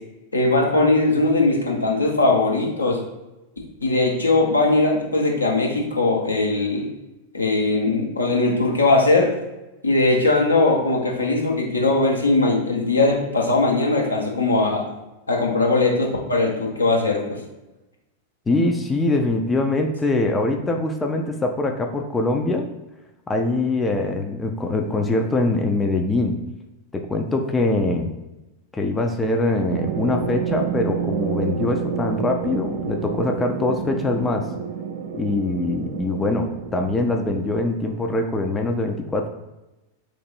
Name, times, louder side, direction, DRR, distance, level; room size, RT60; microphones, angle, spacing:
voice 1, 0.3-3.0 3.8-6.9 7.3-9.3 9.8-14.8 15.3-17.4, left 2 dB, 80° left, -1 dB, 0.8 m, -20 dB
voice 2, 18.5-22.7 23.3-26.4 26.9-28.1 28.7-34.4 35.1-39.3, left 2 dB, 15° left, 3 dB, 0.4 m, -23 dB
sound 1, 29.7-38.2, right 7 dB, 55° right, 0.4 m, -29 dB
3.0 x 2.5 x 4.3 m, 1.0 s
figure-of-eight pair, 90°, 0 cm